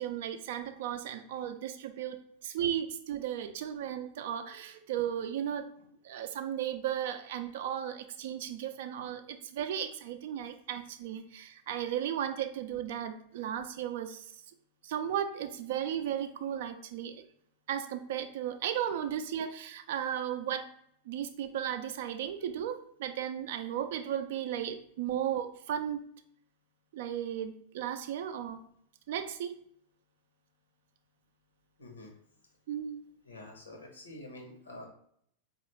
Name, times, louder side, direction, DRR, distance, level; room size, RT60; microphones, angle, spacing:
voice 1, 0.0-2.2 2.4-5.7 6.0-14.3 14.8-17.2 17.7-20.7 21.1-26.1 26.9-28.7 29.1-29.6 32.7-33.1, right 10 dB, 55° right, 8 dB, 0.4 m, -35 dB
voice 2, 31.8-32.1 33.2-34.9, left 1 dB, 75° left, 2 dB, 0.9 m, -47 dB
4.0 x 2.4 x 3.1 m, 0.66 s
figure-of-eight pair, 90°, 0 cm